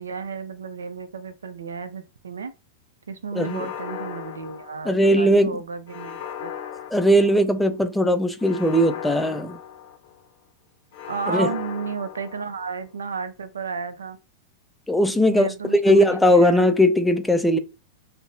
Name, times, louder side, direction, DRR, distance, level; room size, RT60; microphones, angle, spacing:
voice 1, 0.0-2.5 3.1-6.5 11.1-14.2 15.3-16.7, right 5 dB, 80° right, 0.4 m, -33 dB
sound 1, 3.3-5.2 5.9-7.7 8.4-10.3 10.9-12.8, left 9 dB, 55° left, 0.5 m, -37 dB
voice 2, 3.4-3.7 4.8-5.6 6.9-9.6 11.3-11.5 14.9-17.6, equal, 5° left, 0.3 m, -19 dB
2.5 x 2.0 x 2.8 m
hypercardioid pair, 100°, 0 cm